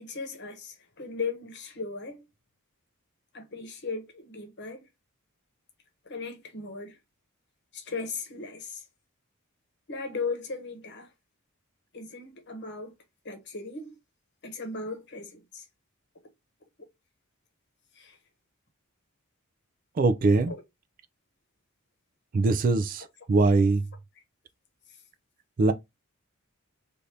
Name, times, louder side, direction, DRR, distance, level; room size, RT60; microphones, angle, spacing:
voice 1, 0.0-2.3 3.3-4.8 6.1-7.0 7.7-8.8 9.9-11.1 11.9-12.9 13.2-14.0 14.4-15.6 17.9-18.2 20.5-20.6 23.5-23.6, left 4 dB, 55° left, 1.0 m, -37 dB
voice 2, 20.0-20.5 22.3-23.0 23.3-23.8 25.6-25.7, right 3 dB, 40° right, 0.3 m, -21 dB
3.3 x 2.6 x 2.7 m
head